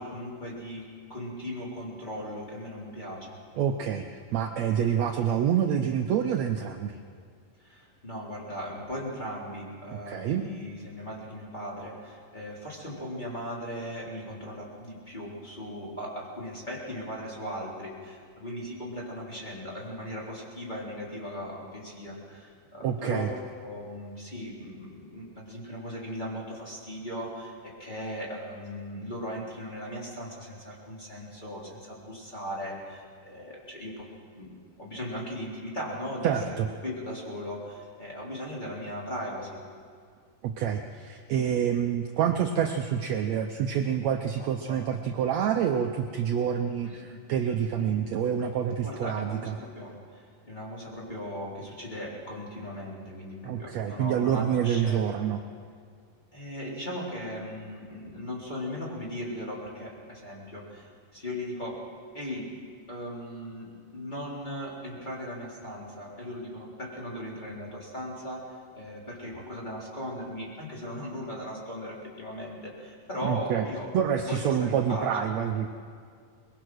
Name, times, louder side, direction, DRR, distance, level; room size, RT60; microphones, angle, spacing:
voice 1, 0.0-3.4 7.6-23.3 23.6-34.1 34.3-36.6 36.8-39.6 44.4-44.8 46.7-47.2 47.8-48.0 48.8-55.1 56.3-61.8 62.1-62.5 62.9-73.9 74.2-75.1, equal, 10° left, -5 dB, 3.6 m, -38 dB
voice 2, 3.6-7.0 9.9-10.5 22.8-23.3 36.2-36.7 40.4-49.6 53.4-55.4 73.2-73.6 73.9-75.7, right 8 dB, 80° right, 4 dB, 1.5 m, -27 dB
23.0 x 21.5 x 6.3 m, 2.1 s
omnidirectional pair, 4.2 m